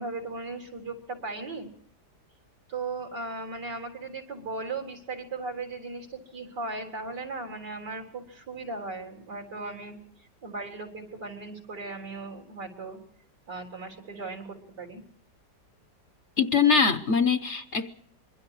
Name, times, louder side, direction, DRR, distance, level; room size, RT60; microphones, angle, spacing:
voice 1, 0.0-1.7 2.7-10.0 10.4-13.0 13.5-15.0, right 3 dB, 85° right, 4.5 m, -37 dB
voice 2, 16.4-17.9, left 5 dB, 45° left, 1.2 m, -23 dB
25.5 x 22.5 x 4.9 m
omnidirectional pair, 1.8 m